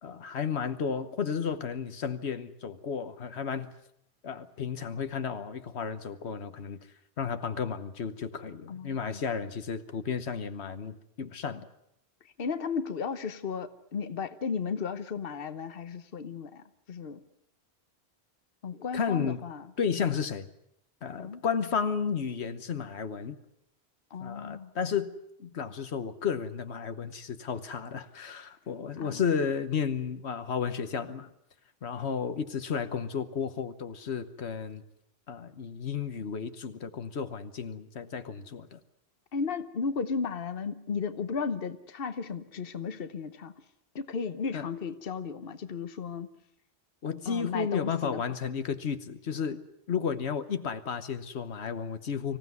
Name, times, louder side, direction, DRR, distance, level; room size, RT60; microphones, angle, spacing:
voice 1, 0.0-3.7 4.2-6.8 7.2-11.7 18.9-19.4 19.8-20.5 21.0-23.3 24.2-25.1 25.4-31.3 31.8-34.8 35.3-38.8 44.5-44.7 47.0-49.6 49.9-52.4, left 6 dB, 85° left, 10 dB, 1.4 m, -33 dB
voice 2, 8.7-9.2 12.4-17.2 18.6-19.7 21.2-21.4 24.1-24.7 29.0-29.2 39.3-43.5 43.9-46.3 47.2-48.2, left 5 dB, 60° left, 11 dB, 1.2 m, -34 dB
25.0 x 16.0 x 9.5 m, 0.78 s
omnidirectional pair, 1.1 m